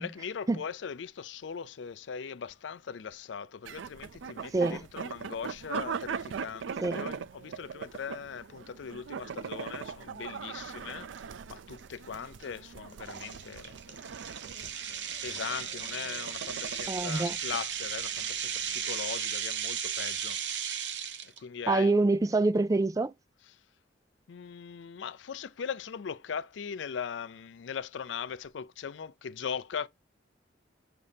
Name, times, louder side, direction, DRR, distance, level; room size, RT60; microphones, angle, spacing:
voice 1, 0.0-14.1 15.2-20.4 21.2-22.0 23.4-23.6 24.3-29.9, left 7 dB, 70° left, 0.4 m, -40 dB
sound 1, 3.6-19.0, right 6 dB, 85° right, 0.4 m, -41 dB
sound 2, 11.1-11.2 11.8-12.0 12.4-12.5 13.1-21.4, right 8 dB, 70° right, 0.8 m, -35 dB
voice 2, 16.9-17.3 21.7-23.1, right 2 dB, 20° right, 0.3 m, -26 dB
6.8 x 2.7 x 5.0 m
head